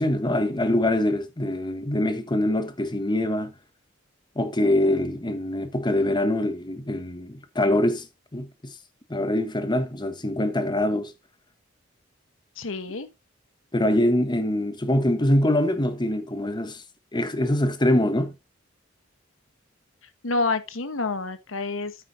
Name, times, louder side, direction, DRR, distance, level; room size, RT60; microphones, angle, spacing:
voice 1, 0.0-3.5 4.4-8.1 8.3-8.7 9.1-11.1 13.7-16.8 17.1-18.3, left 1 dB, 25° left, 1.1 m, -24 dB
voice 2, 12.6-13.1 20.2-21.9, left 3 dB, 85° left, 1.2 m, -28 dB
10.0 x 8.8 x 2.7 m
head